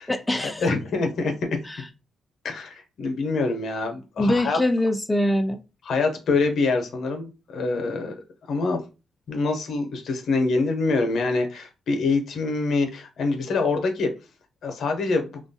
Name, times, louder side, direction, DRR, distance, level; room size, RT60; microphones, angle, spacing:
voice 1, 0.1-0.7 1.6-1.8 4.2-5.6, left 1 dB, 15° left, 0.3 m, -23 dB
voice 2, 0.6-1.6 2.4-4.6 5.9-8.1 8.5-8.8 9.3-14.1 14.6-15.4, left 3 dB, 75° left, 0.6 m, -25 dB
3.0 x 2.2 x 2.6 m
cardioid pair, 65°, 0 cm